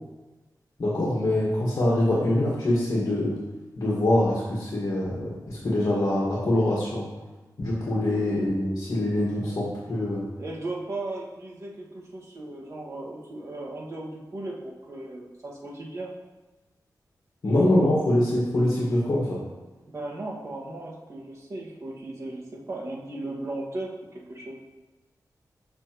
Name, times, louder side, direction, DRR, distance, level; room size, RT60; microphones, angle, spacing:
voice 1, 0.8-3.3 3.8-7.1 7.6-10.2 17.4-19.4, left 1 dB, 55° left, -5 dB, 1.6 m, -24 dB
voice 2, 10.4-16.1 19.8-24.5, right 2 dB, 50° right, -4 dB, 1.7 m, -36 dB
7.0 x 6.3 x 3.0 m, 1.2 s
wide cardioid pair, 110°, 7 cm